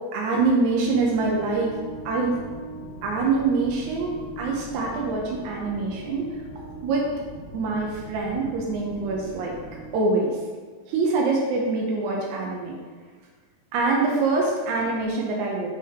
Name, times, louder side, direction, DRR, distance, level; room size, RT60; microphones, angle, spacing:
voice 1, 0.1-1.7 2.0-2.4 3.0-6.3 6.8-7.1 7.5-9.6 9.9-10.4 10.9-12.8 13.7-15.7, right 3 dB, 80° right, -2 dB, 1.7 m, -24 dB
sound 1, 0.8-9.9, right 2 dB, 55° left, 1.9 m, -40 dB
7.4 x 3.6 x 4.6 m, 1.5 s
omnidirectional pair, 4.5 m